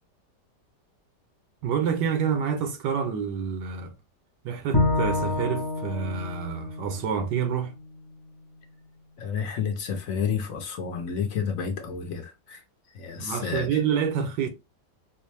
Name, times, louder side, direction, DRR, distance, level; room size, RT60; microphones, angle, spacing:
voice 1, 1.6-3.9 4.4-7.7 13.2-14.5, right 7 dB, 90° right, 1.4 m, -28 dB
Bowed string instrument, 4.7-8.0, left 2 dB, 30° left, 0.4 m, -28 dB
voice 2, 9.2-12.6 12.9-13.8, left 6 dB, 65° left, 0.9 m, -30 dB
4.2 x 2.1 x 3.1 m
omnidirectional pair, 1.8 m